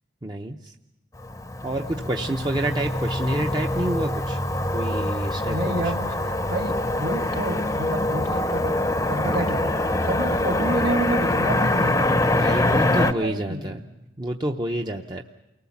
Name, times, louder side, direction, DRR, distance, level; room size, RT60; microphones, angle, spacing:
voice 1, 0.2-0.7 1.6-4.4 4.7-5.6 9.2-9.4 12.3-13.8 14.2-15.2, right 1 dB, 25° right, 2 dB, 0.7 m, -28 dB
Motor vehicle (road), 1.2-13.1, left 1 dB, 15° left, 0.8 m, -24 dB
voice 2, 5.4-9.7 10.0-12.2 12.6-13.8, right 2 dB, 55° right, 4 dB, 2.3 m, -30 dB
29.0 x 19.5 x 7.2 m, 0.96 s
head